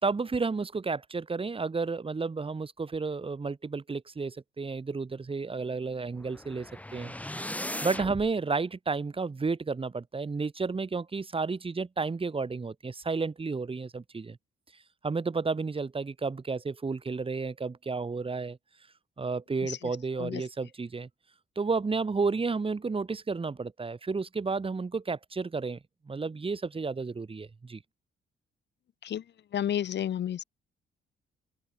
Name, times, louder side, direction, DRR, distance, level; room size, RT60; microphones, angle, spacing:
voice 1, 0.0-14.4 15.0-18.6 19.2-21.1 21.6-25.8 26.1-27.8, right 4 dB, 30° right, 2.9 m, -32 dB
sound 1, 6.1-8.3, left 1 dB, 5° left, 4.2 m, -38 dB
voice 2, 29.5-30.4, left 10 dB, 65° left, 1.6 m, -31 dB
open air
cardioid pair, 90°, 19 cm